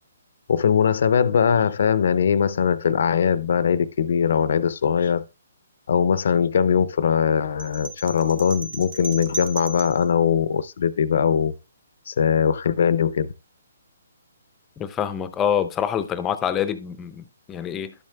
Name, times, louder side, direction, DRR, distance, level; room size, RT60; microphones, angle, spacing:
voice 1, 0.5-5.2 5.9-11.5 12.1-13.3, left 7 dB, 60° left, 0.5 m, -21 dB
sound 1, 7.6-10.1, right 3 dB, 40° right, 1.6 m, -35 dB
voice 2, 14.8-17.9, left 8 dB, 15° left, 0.5 m, -26 dB
12.0 x 7.5 x 2.2 m
hypercardioid pair, 145°, 0 cm